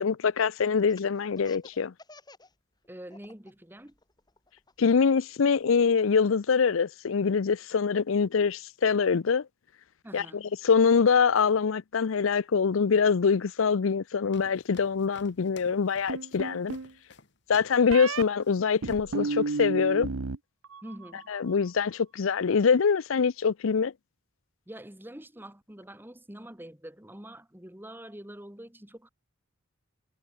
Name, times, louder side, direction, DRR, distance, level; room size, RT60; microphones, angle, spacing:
voice 1, 0.0-1.9 4.8-9.4 10.1-16.8 17.5-20.1 21.3-23.9, left 5 dB, 75° left, 0.5 m, -24 dB
Laughter, 0.8-2.5 2.8-3.5 3.9-5.6, left 3 dB, 20° left, 7.7 m, -52 dB
voice 2, 2.9-3.9 10.0-10.4 20.8-21.2 24.7-29.1, right 1 dB, 10° right, 1.7 m, -45 dB
sound 1, 14.3-17.8 18.2-18.6 18.9-19.2, left 3 dB, 55° left, 2.6 m, -52 dB
sound 2, 16.1-16.9 17.9-18.2 18.8-20.4 20.6-21.2, right 3 dB, 85° right, 0.9 m, -32 dB
head